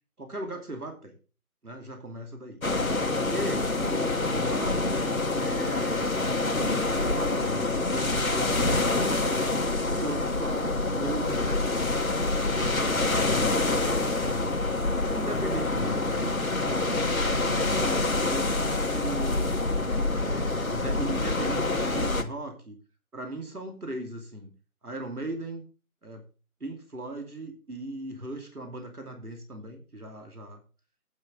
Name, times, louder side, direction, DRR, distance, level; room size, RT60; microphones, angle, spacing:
voice 1, 0.2-1.1 1.6-2.6 3.3-4.1 4.4-5.0 5.4-6.1 6.6-9.4 9.9-11.9 12.1-14.6 15.1-16.9 17.4-19.6 20.1-22.8 23.1-24.5 24.8-25.7 26.0-26.2 26.6-30.6, right 1 dB, 80° right, 4 dB, 2.8 m, -38 dB
sound 1, 2.6-22.2, left 2 dB, 70° left, 1.7 m, -26 dB
9.9 x 6.8 x 5.2 m, 0.35 s
figure-of-eight pair, 165°, 44 cm